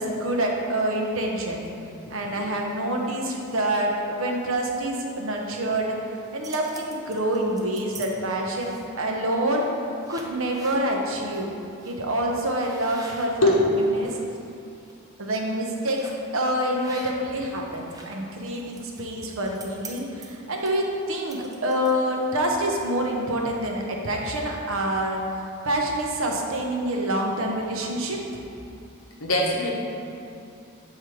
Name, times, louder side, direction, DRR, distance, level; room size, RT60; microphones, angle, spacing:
voice 1, 0.0-1.6 2.1-6.0 6.3-9.7 10.1-11.5 11.8-13.5 13.9-14.2 15.2-16.1 16.3-25.2 25.6-28.2, right 1 dB, 65° right, 1 dB, 0.7 m, -26 dB
sound 1, 6.2-8.1 8.5-9.0 9.6-9.7 10.0-10.8 11.3-11.5 11.8-12.0 12.5-14.2 14.7-14.9 16.0-16.3 16.8-17.4 17.7-22.2, right 3 dB, 15° right, 0.4 m, -45 dB
voice 2, 29.2-29.7, left 1 dB, 65° left, -1 dB, 0.9 m, -21 dB
6.9 x 3.3 x 4.5 m, 2.5 s
head